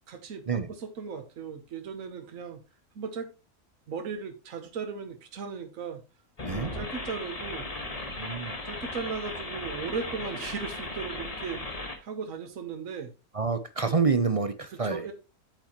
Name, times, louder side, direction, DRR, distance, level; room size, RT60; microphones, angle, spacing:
voice 1, 0.1-2.6 2.9-3.3 3.9-6.0 6.5-7.7 8.6-13.1 14.7-15.1, right 5 dB, 75° right, 1.5 m, -37 dB
sound 1, 6.4-12.0, left 2 dB, 30° left, 1.5 m, -37 dB
voice 2, 8.2-8.5 13.3-15.0, right 5 dB, 40° right, 0.5 m, -27 dB
8.8 x 8.1 x 3.0 m
omnidirectional pair, 1.4 m